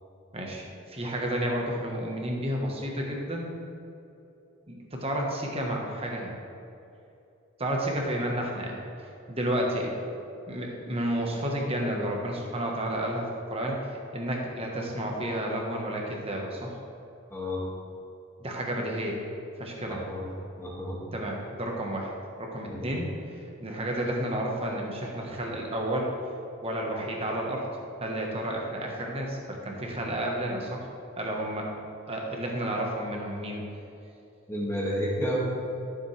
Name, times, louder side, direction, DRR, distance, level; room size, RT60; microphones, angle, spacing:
voice 1, 0.3-3.5 4.7-6.3 7.6-9.9 10.5-16.8 18.4-19.2 19.6-20.0 21.1-22.1 22.4-26.1 26.6-27.7 28.0-30.9 31.2-31.7 32.1-33.6, right 1 dB, 25° right, 0 dB, 1.3 m, -31 dB
voice 2, 19.9-20.2 20.6-21.0 22.7-22.9 34.5-35.4, equal, 10° left, -5 dB, 2.0 m, -31 dB
13.0 x 7.4 x 3.4 m, 2.8 s
head